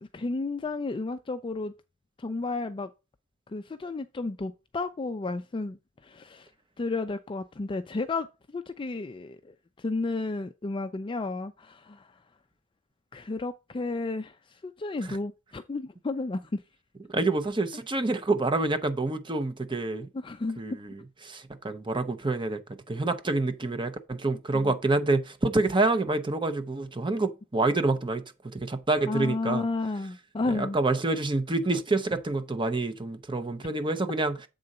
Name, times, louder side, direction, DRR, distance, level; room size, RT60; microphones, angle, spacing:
voice 1, 0.0-1.7 2.2-2.9 3.5-6.5 6.8-12.2 13.1-16.6 20.1-20.6 24.5-24.7 29.1-30.8, left 3 dB, 25° left, 0.4 m, -32 dB
voice 2, 17.1-20.1 20.6-20.7 21.2-22.6 22.9-29.6 30.5-34.4, right 2 dB, 20° right, 0.8 m, -27 dB
7.7 x 3.8 x 5.3 m
head